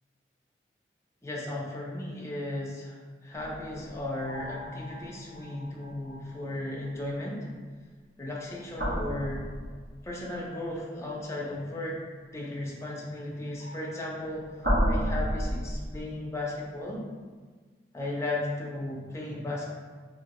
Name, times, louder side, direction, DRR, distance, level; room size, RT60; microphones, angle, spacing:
voice 1, 1.2-7.5 8.2-9.4 10.0-12.0 12.3-14.4 14.8-17.0 17.9-19.7, left 1 dB, 15° left, -3 dB, 0.5 m, -35 dB
sound 1, 3.3-6.8 8.6-10.2 13.6-16.0, equal, 70° right, 1.1 m, -32 dB
2.9 x 2.8 x 2.9 m, 1.5 s
head